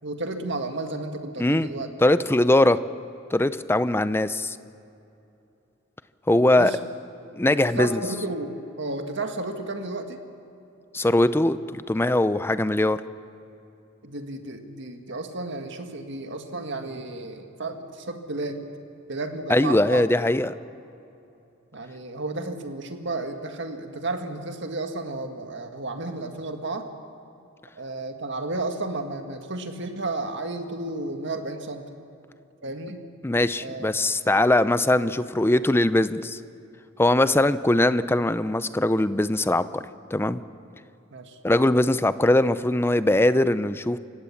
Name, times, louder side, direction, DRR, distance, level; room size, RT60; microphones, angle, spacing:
voice 1, 0.0-1.9 6.6-6.8 7.6-10.2 14.0-18.7 19.1-20.0 21.7-26.9 27.8-31.9 32.6-33.0 33.6-33.9 41.1-41.4, right 2 dB, 65° right, 5 dB, 1.9 m, -32 dB
voice 2, 2.0-2.8 3.3-4.6 6.3-6.7 7.3-8.0 10.9-13.0 19.5-20.5 33.2-36.4 37.0-39.8 40.1-40.4 41.4-44.0, left 1 dB, 10° left, 14 dB, 0.5 m, -21 dB
28.5 x 16.5 x 7.3 m, 2.8 s
head